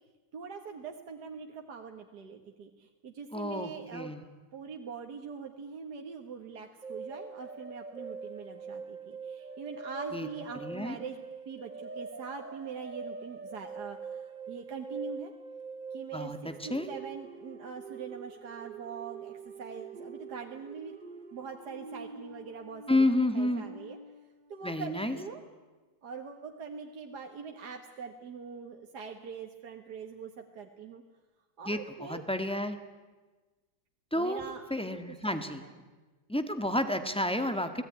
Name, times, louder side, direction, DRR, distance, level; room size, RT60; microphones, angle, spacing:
voice 1, 0.3-4.2 4.5-11.2 11.5-15.3 15.9-20.9 21.3-23.1 23.3-24.0 24.5-25.4 26.0-31.0 31.6-32.2 34.2-35.7, right 5 dB, 60° right, 3 dB, 1.9 m, -43 dB
voice 2, 3.3-4.2 10.1-10.3 10.6-10.9 16.1-16.9 22.9-23.6 24.6-25.2 31.6-32.8 34.1-34.4 34.7-35.6 36.3-37.8, left 1 dB, 5° left, 8 dB, 1.6 m, -30 dB
sound 1, 6.8-24.2, right 4 dB, 35° right, 0.8 m, -44 dB
29.0 x 18.5 x 9.9 m, 1.3 s
omnidirectional pair, 2.1 m